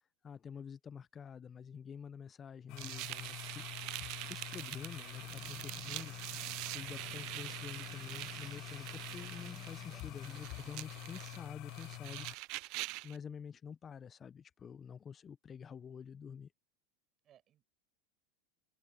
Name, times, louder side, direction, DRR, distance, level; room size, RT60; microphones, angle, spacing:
voice 1, 0.2-3.7 4.2-12.3 13.0-16.5, left 7 dB, 30° left, 0.7 m, -48 dB
sound 1, 2.7-12.3, left 20 dB, 55° left, 0.3 m, -47 dB
sound 2, 2.8-13.2, right 23 dB, 60° right, 0.5 m, -45 dB
sound 3, 5.2-10.7, right 3 dB, 10° right, 0.8 m, -59 dB
voice 2, 9.9-10.6 17.2-17.6, right 11 dB, 40° right, 7.0 m, -66 dB
open air
hypercardioid pair, 105°, 0 cm